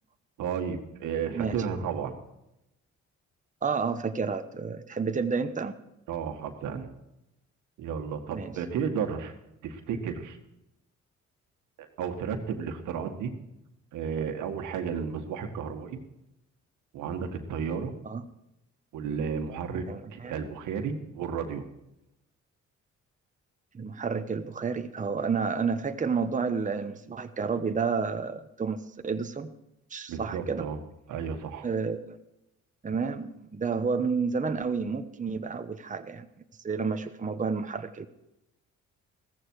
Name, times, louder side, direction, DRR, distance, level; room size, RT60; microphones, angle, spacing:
voice 1, 0.4-2.1 6.1-6.9 7.8-9.3 9.6-10.4 11.8-13.3 13.9-16.0 16.9-17.9 18.9-19.9 20.1-21.6 30.1-30.8 31.1-31.7, right 7 dB, 90° right, 6 dB, 1.8 m, -33 dB
voice 2, 3.6-5.8 8.3-8.5 18.0-18.2 19.9-20.4 23.7-29.5 29.9-30.7 31.6-32.2 32.8-36.3 36.6-38.1, right 5 dB, 25° right, 8 dB, 1.0 m, -30 dB
15.0 x 14.5 x 4.7 m, 0.87 s
cardioid pair, 90°, 30 cm